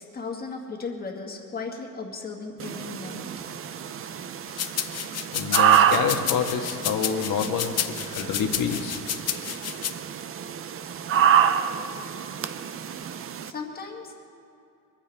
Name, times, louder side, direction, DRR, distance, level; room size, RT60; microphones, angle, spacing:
voice 1, 0.0-3.3 13.5-14.1, left 4 dB, 25° left, 1 dB, 1.8 m, -36 dB
sound 1, 2.6-13.5, right 9 dB, 40° right, 0.6 m, -27 dB
sound 2, 4.6-9.9, left 10 dB, 45° left, 0.7 m, -30 dB
voice 2, 5.3-9.0, left 7 dB, 70° left, 4 dB, 1.6 m, -28 dB
23.5 x 15.0 x 3.5 m, 2.7 s
cardioid pair, 175°, 35 cm